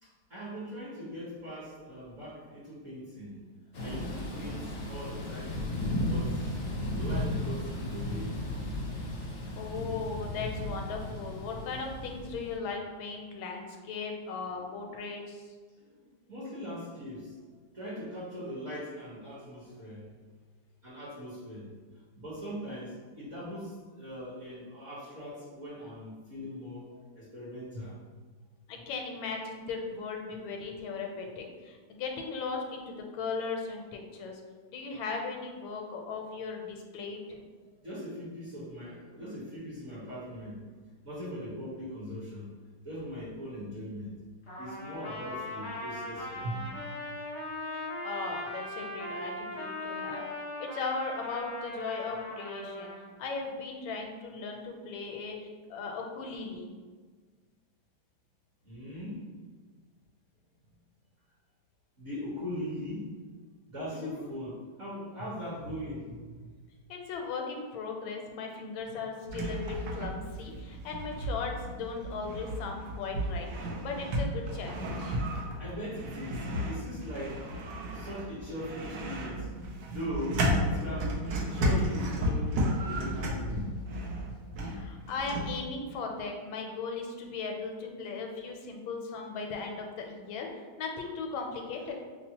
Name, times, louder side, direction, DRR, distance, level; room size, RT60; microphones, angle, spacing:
voice 1, 0.0-3.4 3.8-5.6 6.1-6.5 6.9-8.4 15.8-17.4 17.7-20.2 20.8-21.7 22.2-28.0 37.6-40.6 41.0-42.5 42.8-44.1 44.6-46.8 58.6-59.2 62.0-63.1 63.7-66.6 68.9-69.0 75.6-77.5 77.9-83.7, equal, 45° right, -9 dB, 1.1 m, -40 dB
Thunder / Rain, 3.7-12.6, left 1 dB, 65° left, 0.7 m, -35 dB
voice 2, 9.6-15.5 28.7-34.4 34.7-37.4 48.0-50.2 50.6-52.9 53.2-56.7 64.0-64.3 66.9-75.2 84.6-90.5 90.8-91.9, left 4 dB, 80° left, 2 dB, 1.3 m, -37 dB
Trumpet, 44.5-53.0, left 1 dB, 30° left, 0.6 m, -39 dB
sound 1, 69.3-85.5, equal, 70° right, 1.2 m, -33 dB
5.6 x 2.0 x 2.8 m, 1.5 s
omnidirectional pair, 2.2 m